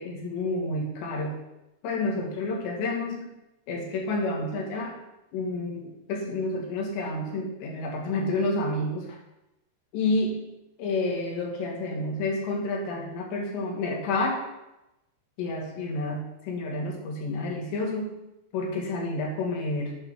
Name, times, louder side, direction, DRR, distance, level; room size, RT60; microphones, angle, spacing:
voice 1, 0.0-1.4 1.8-3.3 3.7-5.0 5.3-9.1 9.9-10.4 10.8-14.4 15.4-18.2 18.5-19.9, left 2 dB, 80° left, -1 dB, 3.8 m, -29 dB
9.0 x 4.7 x 5.9 m, 0.94 s
omnidirectional pair, 5.0 m